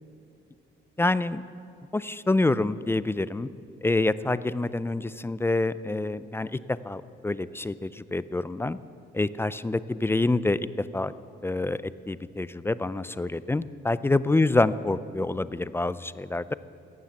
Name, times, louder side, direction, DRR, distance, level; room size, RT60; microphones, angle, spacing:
voice 1, 1.0-1.4 1.9-3.5 3.8-8.8 9.1-11.1 11.4-11.8 12.1-16.5, left 2 dB, 10° left, 16 dB, 0.3 m, -27 dB
15.0 x 10.0 x 7.1 m, 2.5 s
cardioid pair, 90°, 20 cm